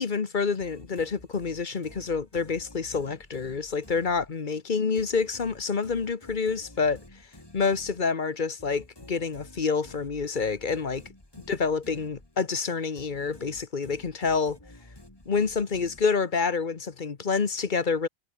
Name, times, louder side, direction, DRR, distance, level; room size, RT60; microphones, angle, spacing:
voice 1, 0.0-7.0 7.5-11.0 11.5-14.6 15.3-18.1, left 5 dB, 50° left, 1.3 m, -28 dB
sound 1, 0.6-4.6 5.0-12.6 13.0-16.4, left 1 dB, 20° left, 3.0 m, -51 dB
omnidirectional pair, 1.1 m